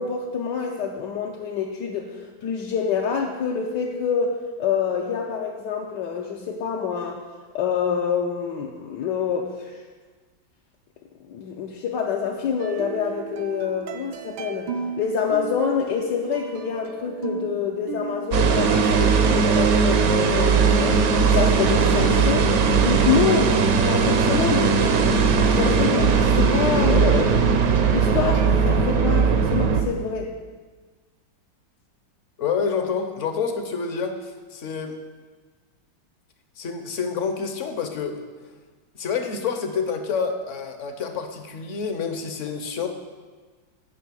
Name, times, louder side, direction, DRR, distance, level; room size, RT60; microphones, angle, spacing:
voice 1, 0.0-7.2 7.5-9.8 11.3-14.7 15.0-21.0 21.3-22.5 22.8-23.5 23.8-25.0 25.5-27.0 27.9-30.3, left 6 dB, 70° left, -1 dB, 1.4 m, -26 dB
sound 1, 12.6-28.8, right 5 dB, 80° right, 1.4 m, -36 dB
sound 2, 18.3-29.8, right 5 dB, 60° right, 1.1 m, -19 dB
voice 2, 26.9-27.4 32.4-35.0 36.6-38.2 39.0-42.9, left 6 dB, 50° left, 6 dB, 1.0 m, -28 dB
9.4 x 5.4 x 7.4 m, 1.4 s
omnidirectional pair, 2.0 m